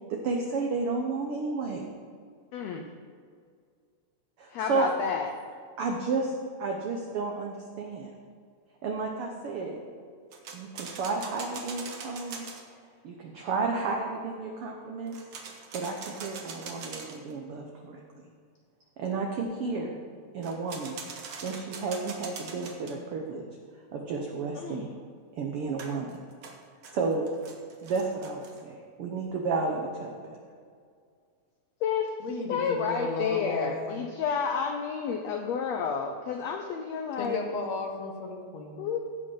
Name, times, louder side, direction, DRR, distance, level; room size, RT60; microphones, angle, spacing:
voice 1, 0.1-1.8 4.4-4.9 5.8-6.3 6.6-8.1 8.8-9.8 10.5-12.5 13.0-15.2 15.7-18.3 19.0-20.0 20.3-21.0 21.4-23.4 23.9-24.9 25.4-26.2 26.9-27.3 27.8-30.1, right 4 dB, 80° right, 1 dB, 1.2 m, -32 dB
voice 2, 2.5-2.9 4.5-5.3 24.5-24.9 31.8-32.1 32.5-37.4 38.8-39.0, left 6 dB, 80° left, 4 dB, 1.5 m, -30 dB
sound 1, 10.3-12.6 15.1-17.3 20.4-22.9 25.8-28.6, right 5 dB, 60° right, 1.5 m, -42 dB
voice 3, 32.2-34.0 37.2-38.9, left 3 dB, 65° left, 2 dB, 2.2 m, -34 dB
15.5 x 5.3 x 5.6 m, 2.1 s
omnidirectional pair, 3.7 m